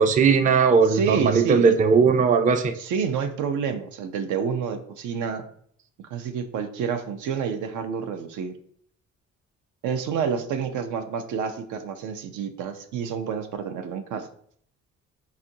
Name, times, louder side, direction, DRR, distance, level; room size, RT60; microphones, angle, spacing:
voice 1, 0.0-2.7, right 5 dB, 25° right, 8 dB, 0.3 m, -18 dB
voice 2, 0.9-1.7 2.7-5.5 6.0-8.6 9.8-14.3, right 6 dB, 80° right, 8 dB, 0.5 m, -28 dB
5.1 x 2.4 x 2.7 m, 0.63 s
cardioid pair, 90°, 30 cm